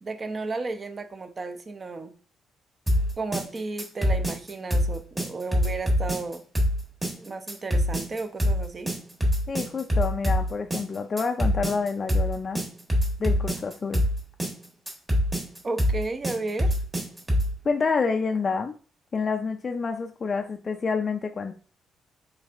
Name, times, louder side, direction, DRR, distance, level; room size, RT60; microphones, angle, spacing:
voice 1, 0.0-2.1 3.2-6.4 7.2-8.9 15.6-16.7, right 3 dB, 35° right, 9 dB, 0.5 m, -33 dB
sound 1, 2.9-17.6, equal, 15° right, 1.3 m, -25 dB
voice 2, 9.5-12.6 13.2-14.0 17.6-18.7 19.1-21.5, left 4 dB, 40° left, 5 dB, 0.3 m, -28 dB
4.1 x 3.2 x 2.4 m, 0.39 s
cardioid pair, 90°, 0 cm